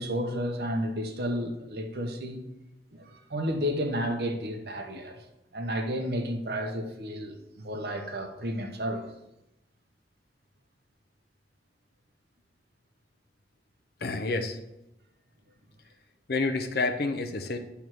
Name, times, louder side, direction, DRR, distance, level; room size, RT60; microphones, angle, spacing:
voice 1, 0.0-2.4 2.9-5.2 5.5-9.1, equal, 60° right, 1.0 m, -32 dB
voice 2, 14.0-14.6 16.3-17.6, left 3 dB, 60° left, 0.7 m, -28 dB
9.0 x 3.5 x 6.2 m
head